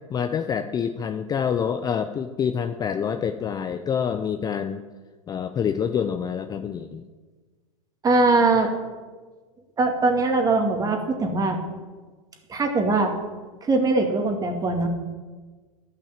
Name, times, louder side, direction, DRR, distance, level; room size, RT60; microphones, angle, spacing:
voice 1, 0.1-4.8 5.3-7.1, left 7 dB, 20° left, 8 dB, 0.5 m, -27 dB
voice 2, 8.0-8.7 9.8-11.6 12.5-13.1 13.6-14.9, right 3 dB, 20° right, 3 dB, 2.1 m, -21 dB
12.0 x 5.9 x 8.8 m, 1.4 s
hypercardioid pair, 115°, 17 cm